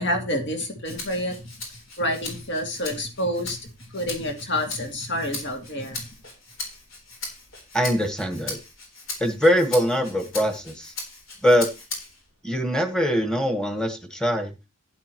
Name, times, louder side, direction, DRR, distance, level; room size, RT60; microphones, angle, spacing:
voice 1, 0.0-1.4 2.0-3.6 3.9-6.0, left 1 dB, 60° left, 3 dB, 2.5 m, -28 dB
Rattle (instrument), 0.8-12.3 12.7-13.9, left 3 dB, 75° left, 3.9 m, -39 dB
voice 2, 7.7-8.6 9.2-10.9 11.4-11.7 12.4-14.5, equal, 5° left, 7 dB, 1.4 m, -22 dB
12.0 x 9.9 x 3.1 m, 0.27 s
head